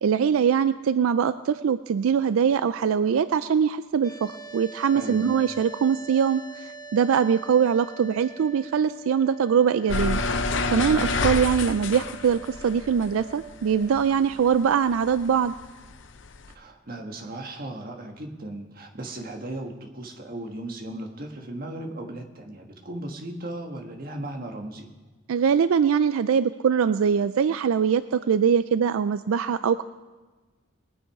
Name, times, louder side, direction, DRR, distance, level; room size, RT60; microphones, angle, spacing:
voice 1, 0.0-10.2 10.7-15.6 25.3-29.8, right 7 dB, 85° right, 13 dB, 0.4 m, -22 dB
sound 1, 4.0-14.1, right 4 dB, 15° left, 0.8 m, -44 dB
voice 2, 4.9-5.3 10.9-11.1 16.5-24.9, right 1 dB, 45° right, 3 dB, 1.5 m, -36 dB
sound 2, 9.9-14.6 14.9-16.5, left 3 dB, 60° left, 0.6 m, -28 dB
20.5 x 9.3 x 4.8 m, 1.3 s
head